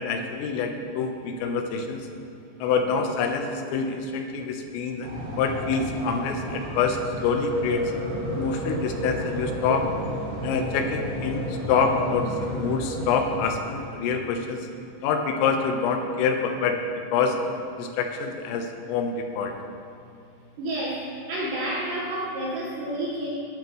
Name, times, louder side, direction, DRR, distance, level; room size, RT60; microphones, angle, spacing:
voice 1, 0.0-2.1 2.6-7.8 8.3-9.9 10.4-14.6 15.0-16.8 17.1-17.4 17.8-19.5, left 5 dB, 80° left, 4 dB, 3.6 m, -26 dB
sound 1, 5.0-14.0, equal, 85° right, 4.8 m, -32 dB
voice 2, 20.6-21.0 21.3-23.3, right 1 dB, 65° right, -6 dB, 3.4 m, -29 dB
20.0 x 10.5 x 3.1 m, 2.4 s
omnidirectional pair, 6.0 m